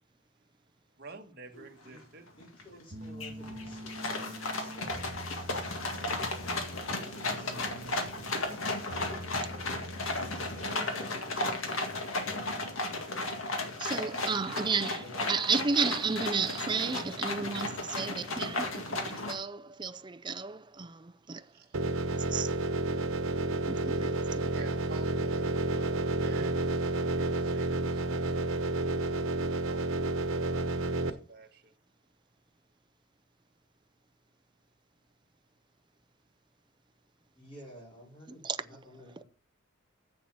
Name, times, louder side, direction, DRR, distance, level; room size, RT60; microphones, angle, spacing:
voice 1, 1.0-2.2 10.5-12.1 21.3-21.9 24.5-29.8 30.2-30.6 31.1-31.7, right 3 dB, 50° right, 1.6 m, -50 dB
voice 2, 1.5-2.0 2.4-5.3 13.9-14.2 14.5-15.5 37.4-39.2, equal, 25° left, 4.2 m, -54 dB
sound 1, 2.0-2.1 2.4-2.8 3.2-19.3, left 2 dB, 75° left, 2.0 m, -35 dB
sound 2, 2.9-11.0, right 1 dB, 70° right, 1.8 m, -45 dB
voice 3, 13.8-15.0 15.3-21.4 22.1-22.5 23.7-24.6 38.4-38.6, right 5 dB, 20° right, 0.5 m, -33 dB
sound 3, 21.7-31.1, right 2 dB, 90° right, 1.2 m, -30 dB
7.6 x 7.1 x 7.2 m
head